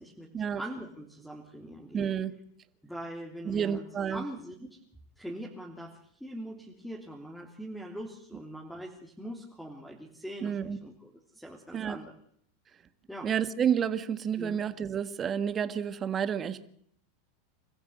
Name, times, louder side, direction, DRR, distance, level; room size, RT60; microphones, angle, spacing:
voice 1, 0.6-2.2 2.8-3.8 4.1-4.8 5.2-12.1 13.1-13.3 14.4-14.6, equal, ahead, 0 dB, 3.2 m, -42 dB
voice 2, 1.9-2.3 3.4-4.2 10.4-10.8 11.7-12.0 13.2-16.7, right 8 dB, 25° right, 12 dB, 1.6 m, -30 dB
27.0 x 14.5 x 8.1 m, 0.65 s
supercardioid pair, 120°, 0 cm